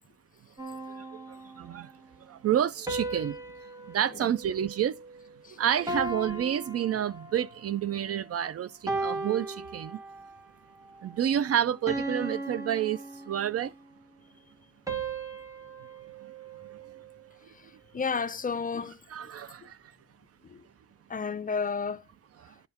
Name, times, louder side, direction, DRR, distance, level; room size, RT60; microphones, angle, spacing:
sound 1, 0.6-1.9 2.9-5.4 5.9-7.6 8.1-8.4 8.9-10.4 10.9-11.2 11.9-13.8 14.9-17.2, right 2 dB, 10° right, 1.6 m, -37 dB
voice 1, 1.0-1.9 2.2-3.4 3.9-5.0 5.6-10.0 11.0-13.0 13.3-13.7 16.2-16.3 16.7-16.8 19.1-19.8 22.4-22.5, right 10 dB, 50° right, 0.6 m, -29 dB
voice 2, 17.5-19.0 20.4-20.6 21.1-22.0, left 5 dB, 30° left, 0.6 m, -32 dB
10.5 x 5.7 x 4.3 m
cardioid pair, 90°, 30 cm